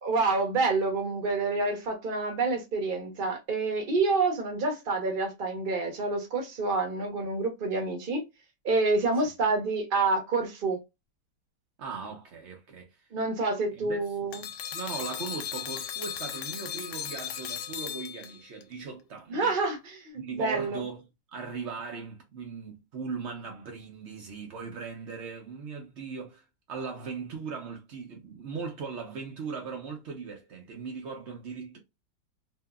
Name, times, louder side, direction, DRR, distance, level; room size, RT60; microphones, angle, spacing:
voice 1, 0.0-8.2 8.6-10.8 13.1-14.4 19.3-20.8, right 3 dB, 45° right, 0.6 m, -28 dB
voice 2, 11.8-13.1 13.7-14.1 14.7-19.6 20.2-21.0 21.3-31.8, right 5 dB, 85° right, 0.6 m, -39 dB
sound 1, 14.3-18.6, left 10 dB, 75° left, 1.1 m, -36 dB
2.8 x 2.7 x 2.2 m
omnidirectional pair, 2.0 m